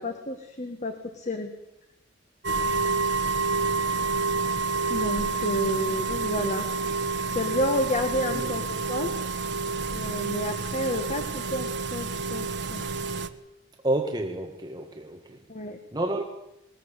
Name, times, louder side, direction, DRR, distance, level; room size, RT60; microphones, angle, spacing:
voice 1, 0.0-1.5 4.9-6.7 7.3-9.1 9.9-12.8 15.5-15.8, left 1 dB, 35° left, 6 dB, 1.8 m, -30 dB
sound 1, 2.4-13.3, right 4 dB, 60° right, 1.3 m, -28 dB
voice 2, 13.8-15.4 15.9-16.2, right 1 dB, 20° right, 2 dB, 1.7 m, -29 dB
20.5 x 20.0 x 8.3 m, 0.85 s
head